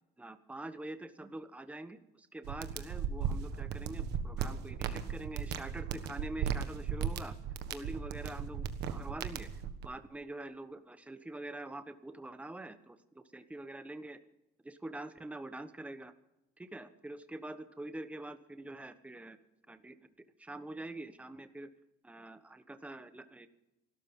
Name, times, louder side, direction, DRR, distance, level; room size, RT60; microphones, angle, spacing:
voice 1, 0.2-7.3 7.7-9.5 9.8-14.2 14.6-16.1 16.6-19.4 19.7-20.0 20.4-21.7 22.0-23.5, right 2 dB, 10° right, 10 dB, 1.1 m, -45 dB
sound 1, 2.4-9.9, right 8 dB, 80° right, 1.5 m, -36 dB
27.5 x 13.0 x 3.8 m, 0.94 s
cardioid pair, 110°, 17 cm